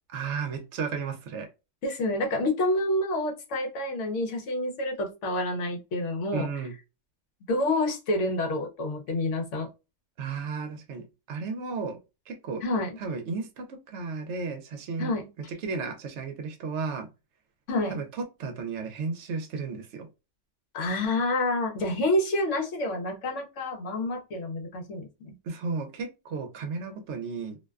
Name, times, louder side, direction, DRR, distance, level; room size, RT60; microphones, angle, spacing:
voice 1, 0.1-1.5 6.3-6.7 10.2-12.0 12.3-12.6 13.0-15.1 15.5-17.1 17.9-20.1 25.4-27.6, right 4 dB, 70° right, 0.8 m, -34 dB
voice 2, 1.8-6.5 7.5-9.7 12.6-13.0 15.0-15.3 17.7-18.0 20.7-25.3, left 1 dB, 75° left, 1.0 m, -28 dB
2.5 x 2.1 x 2.3 m
omnidirectional pair, 1.3 m